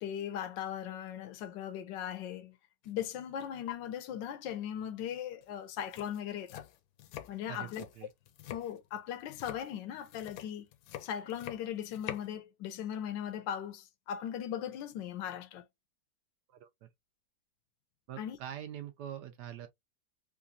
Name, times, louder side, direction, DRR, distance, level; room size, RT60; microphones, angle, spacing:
voice 1, 0.0-2.6 2.9-6.6 7.3-7.8 8.5-10.7 11.0-15.6 18.2-18.4, left 9 dB, 90° left, 1.3 m, -38 dB
sound 1, 2.8-3.1 3.4-3.7 5.4-5.5 5.8-12.3, left 12 dB, 70° left, 1.0 m, -46 dB
voice 2, 7.5-8.1 16.5-16.9 18.1-19.7, right 10 dB, 75° right, 1.2 m, -44 dB
3.9 x 2.3 x 2.5 m
omnidirectional pair, 1.9 m